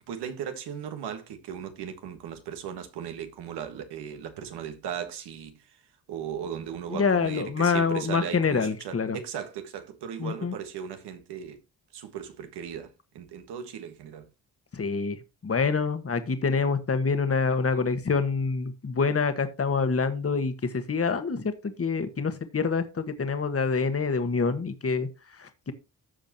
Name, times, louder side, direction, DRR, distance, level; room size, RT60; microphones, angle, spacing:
voice 1, 0.1-5.6 6.1-11.6 11.9-14.3, right 8 dB, 85° right, 1.6 m, -37 dB
voice 2, 6.9-9.2 10.2-10.5 14.7-15.2 15.4-25.1 25.4-25.7, left 5 dB, 35° left, 1.5 m, -26 dB
14.0 x 5.2 x 3.0 m
supercardioid pair, 55°, 39 cm